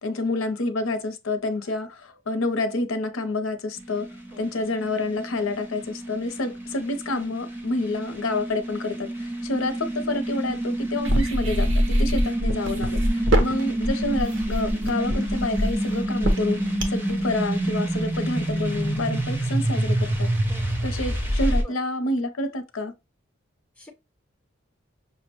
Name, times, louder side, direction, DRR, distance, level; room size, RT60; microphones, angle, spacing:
voice 1, 0.0-4.1 4.4-16.6 16.9-20.3 20.8-22.9, left 2 dB, 80° left, 0.7 m, -28 dB
sound 1, 3.8-21.6, right 1 dB, 10° right, 0.6 m, -28 dB
voice 2, 4.3-4.5 13.2-13.5 20.5-20.7 21.6-21.8 23.8-23.9, equal, 5° left, 1.0 m, -46 dB
sound 2, 11.0-17.1, equal, 70° right, 0.9 m, -23 dB
5.6 x 2.1 x 2.9 m
head